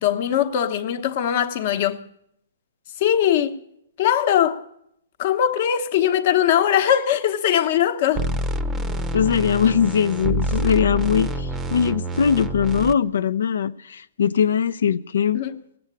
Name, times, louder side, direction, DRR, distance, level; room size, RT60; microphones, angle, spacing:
voice 1, 0.0-2.0 3.0-3.5 4.0-4.6 5.2-8.3 15.3-15.5, left 10 dB, 40° left, 1.0 m, -20 dB
sound 1, 8.1-12.9, right 1 dB, 15° right, 0.7 m, -27 dB
voice 2, 9.1-15.4, left 7 dB, 80° left, 0.6 m, -21 dB
17.5 x 7.9 x 9.7 m
hypercardioid pair, 165°, 0 cm